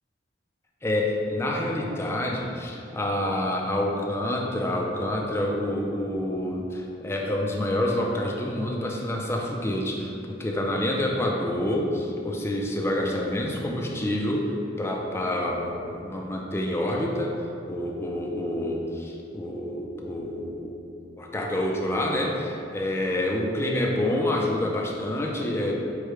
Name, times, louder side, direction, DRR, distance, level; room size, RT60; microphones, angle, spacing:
voice 1, 0.8-10.1 10.4-17.3 17.7-20.8 21.2-25.7, left 1 dB, 15° left, -1 dB, 0.4 m, -27 dB
4.7 x 2.2 x 4.7 m, 2.5 s
head